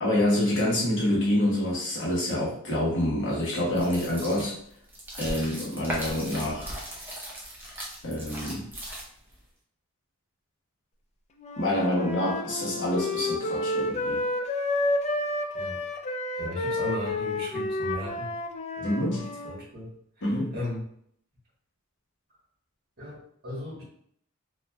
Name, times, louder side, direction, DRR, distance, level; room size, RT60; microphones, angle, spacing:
voice 1, 0.0-4.5 5.2-6.7 8.0-8.6 11.6-14.2 18.8-19.2 20.2-20.5, left 1 dB, 60° left, -5 dB, 1.0 m, -27 dB
sound 1, 3.7-9.4, equal, 10° right, 0.7 m, -38 dB
Wind instrument woodwind instrument, 11.4-19.5, left 2 dB, 30° left, 0.3 m, -30 dB
voice 2, 16.4-18.3 18.8-19.9 20.2-20.8 23.0-23.8, left 1 dB, 50° right, -5 dB, 1.2 m, -37 dB
3.2 x 2.5 x 2.2 m, 0.67 s
head